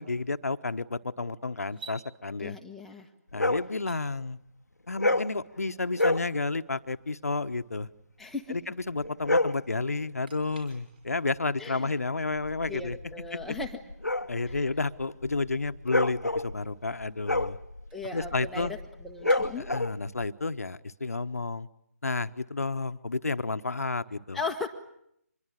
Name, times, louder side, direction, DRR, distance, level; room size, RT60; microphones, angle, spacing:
voice 1, 0.0-2.6 3.3-4.4 4.9-7.9 8.5-13.0 13.3-13.6 14.3-17.6 18.1-18.7 19.6-21.7 22.0-24.4, left 3 dB, 70° left, 11 dB, 1.2 m, -31 dB
sound 1, 1.7-2.0 3.7-4.0 5.8-6.1 10.2-11.3 14.4-14.5 16.5-18.7 19.3-19.4, right 5 dB, 35° right, 5.5 m, -51 dB
voice 2, 2.4-3.1 8.2-8.6 11.6-11.9 12.7-13.8 14.5-14.6 17.9-18.8 19.0-19.7 24.3-24.7, left 4 dB, ahead, 0 dB, 1.4 m, -37 dB
sound 2, 3.3-3.7 4.9-5.4 5.9-6.3 9.0-9.7 12.2-20.3, left 2 dB, 90° left, 1.1 m, -29 dB
25.5 x 22.0 x 9.2 m, 0.75 s
figure-of-eight pair, 150°, 9 cm